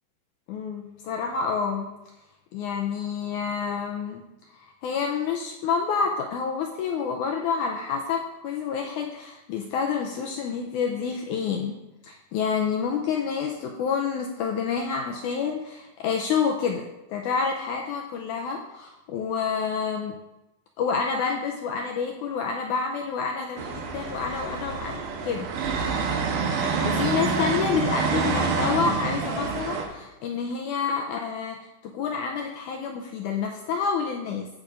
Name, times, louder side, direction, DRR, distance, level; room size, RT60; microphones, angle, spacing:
voice 1, 0.5-1.9 2.5-4.2 4.5-11.8 12.0-20.2 20.8-25.5 26.5-34.5, left 6 dB, 85° left, 2 dB, 1.8 m, -28 dB
sound 1, 23.6-29.9, right 4 dB, 70° right, 2.4 m, -27 dB
15.0 x 6.1 x 2.5 m, 0.97 s
omnidirectional pair, 4.0 m